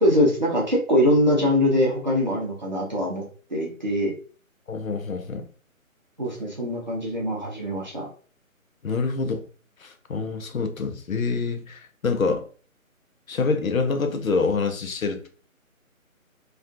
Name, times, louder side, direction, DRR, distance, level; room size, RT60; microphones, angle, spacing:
voice 1, 0.0-3.2 3.5-4.1 6.2-8.1, left 1 dB, 35° right, -3 dB, 0.6 m, -22 dB
voice 2, 4.7-5.5 8.8-9.4 9.8-12.4 13.3-15.3, left 4 dB, 75° left, 7 dB, 0.6 m, -26 dB
2.4 x 2.3 x 2.4 m, 0.40 s
figure-of-eight pair, 150°, 42 cm